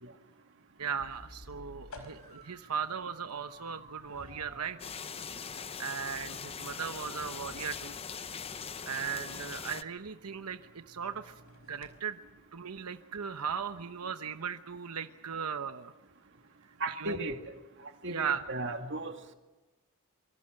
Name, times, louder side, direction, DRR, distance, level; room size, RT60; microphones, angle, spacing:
sound 1, 0.8-12.0, left 1 dB, 75° left, 4.8 m, -56 dB
voice 1, 0.8-4.8 5.8-8.0 8.9-11.3 11.7-12.2 12.5-15.9 17.0-17.2 18.1-18.5, right 6 dB, 90° right, 9 dB, 1.0 m, -37 dB
sound 2, 1.9-4.9 8.2-8.3 10.3-10.4 16.6-16.7, right 4 dB, 35° right, 4.4 m, -56 dB
sound 3, 4.8-9.8, left 6 dB, 25° left, 0.7 m, -41 dB
voice 2, 16.8-17.4 18.0-19.3, right 2 dB, 55° right, 5 dB, 2.2 m, -36 dB
26.0 x 25.0 x 6.6 m, 1.1 s
head